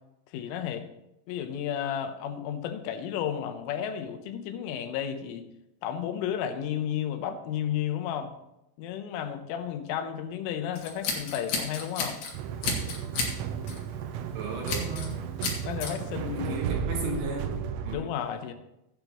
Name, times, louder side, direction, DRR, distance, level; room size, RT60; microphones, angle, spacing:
voice 1, 0.3-0.9 1.3-5.5 5.8-8.3 8.8-12.2 15.6-16.7 17.9-18.5, left 9 dB, 80° left, 7 dB, 3.4 m, -32 dB
Scissors, 10.8-12.3 12.6-13.3 13.7-13.9 14.7-15.1 15.4-15.9, left 4 dB, 55° left, 3.3 m, -31 dB
sound 1, 12.3-18.0, right 8 dB, 90° right, 3.4 m, -33 dB
voice 2, 14.3-15.2 16.5-18.2, right 2 dB, 65° right, 0 dB, 3.1 m, -35 dB
16.5 x 8.9 x 3.0 m, 0.88 s
omnidirectional pair, 5.8 m